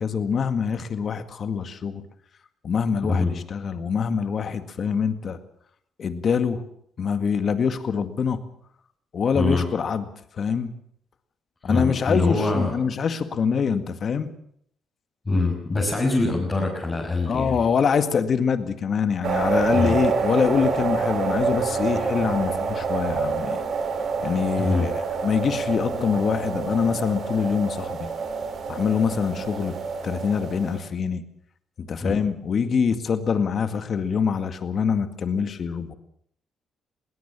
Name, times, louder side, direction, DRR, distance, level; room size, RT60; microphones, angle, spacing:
voice 1, 0.0-2.0 2.6-5.4 6.0-6.6 7.0-8.4 9.1-10.1 10.3-10.7 11.6-14.3 17.3-23.6 24.2-24.9 25.2-28.1 28.7-29.8 30.0-31.2 31.8-35.9, left 6 dB, 50° left, 10 dB, 2.0 m, -24 dB
voice 2, 9.3-9.6 11.6-12.7 15.3-17.6 19.7-20.0 24.6-24.9 32.0-32.1, left 2 dB, 25° left, -3 dB, 5.9 m, -24 dB
sound 1, 19.2-30.8, right 5 dB, 60° right, 3.7 m, -27 dB
21.5 x 18.0 x 7.4 m, 0.68 s
cardioid pair, 90°, 0 cm